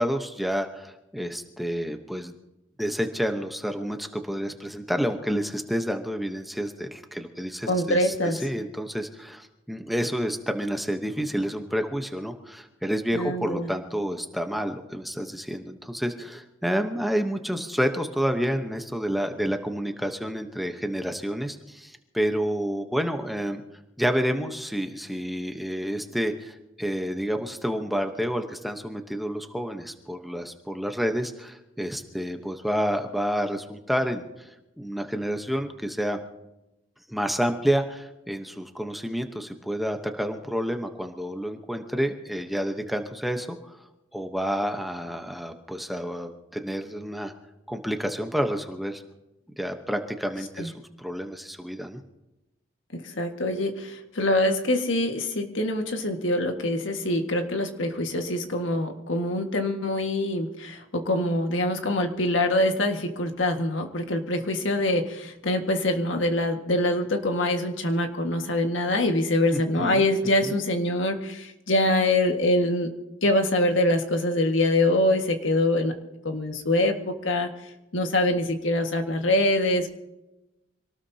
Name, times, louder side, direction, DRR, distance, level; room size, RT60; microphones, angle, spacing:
voice 1, 0.0-2.3 2.8-23.6 24.0-34.5 34.8-36.2 37.1-43.8 44.1-47.3 47.7-49.0 49.6-50.7 51.0-52.0 69.5-70.1 70.4-70.5, equal, ahead, 5 dB, 1.0 m, -29 dB
voice 2, 7.7-8.4 13.1-13.7 50.6-50.7 52.9-72.9 73.2-75.9 76.2-77.5 77.9-79.9, left 1 dB, 80° left, 5 dB, 1.8 m, -24 dB
26.0 x 18.5 x 2.8 m, 0.96 s
head